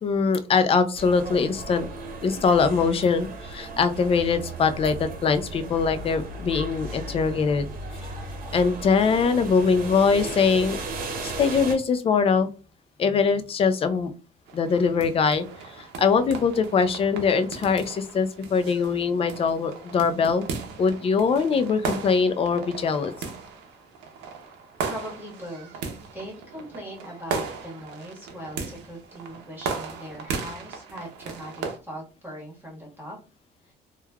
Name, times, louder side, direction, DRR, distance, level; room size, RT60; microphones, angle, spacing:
voice 1, 0.0-1.9 2.2-7.7 8.5-10.8 11.2-12.5 13.0-14.1 14.5-20.4 20.8-23.1, left 5 dB, 35° left, 10 dB, 0.4 m, -22 dB
sound 1, 0.9-11.7, right 2 dB, 60° right, 0.8 m, -36 dB
sound 2, 14.5-31.8, right 5 dB, 90° right, 0.6 m, -37 dB
voice 2, 24.8-25.8 26.1-33.2 33.6-33.7, equal, 10° right, -4 dB, 1.3 m, -40 dB
3.1 x 2.3 x 2.2 m, 0.34 s
cardioid pair, 110°, 17 cm